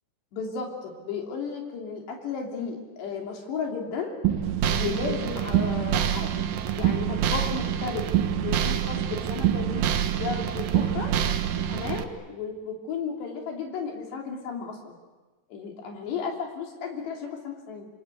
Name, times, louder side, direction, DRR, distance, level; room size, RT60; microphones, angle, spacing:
voice 1, 0.3-4.1 4.7-6.3 6.7-8.0 8.4-9.8 10.2-11.1 11.7-14.9 15.5-17.9, left 5 dB, 75° left, 1 dB, 5.3 m, -34 dB
sound 1, 4.2-12.0, right 10 dB, 65° right, 2.6 m, -26 dB
27.5 x 26.0 x 8.2 m, 1.2 s
omnidirectional pair, 5.0 m